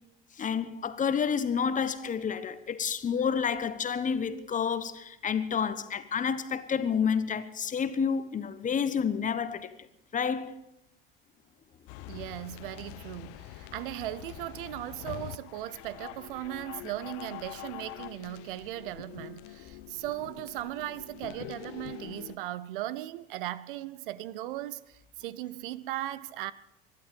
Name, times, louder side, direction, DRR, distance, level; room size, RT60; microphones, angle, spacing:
voice 1, 0.4-9.7 10.1-10.5 12.0-12.2, left 7 dB, 25° left, 1.2 m, -29 dB
sound 1, 11.9-22.4, left 17 dB, 50° left, 0.8 m, -45 dB
voice 2, 12.1-26.5, right 15 dB, 65° right, 0.7 m, -38 dB
24.5 x 11.5 x 5.1 m
figure-of-eight pair, 70°, 29 cm